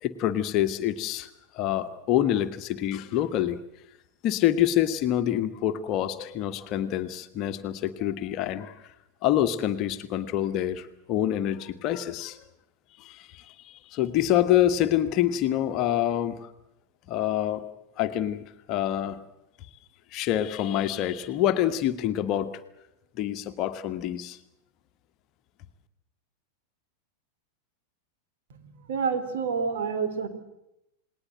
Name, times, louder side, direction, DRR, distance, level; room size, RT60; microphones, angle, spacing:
voice 1, 0.0-3.6 4.2-8.8 9.2-12.4 13.0-16.5 17.1-17.6 18.0-19.2 20.1-22.5 23.1-24.4, left 12 dB, 40° left, 9 dB, 1.4 m, -26 dB
voice 2, 28.5-30.3, right 5 dB, 55° right, 9 dB, 3.4 m, -29 dB
29.0 x 20.0 x 7.8 m, 0.86 s
figure-of-eight pair, 90°, 0 cm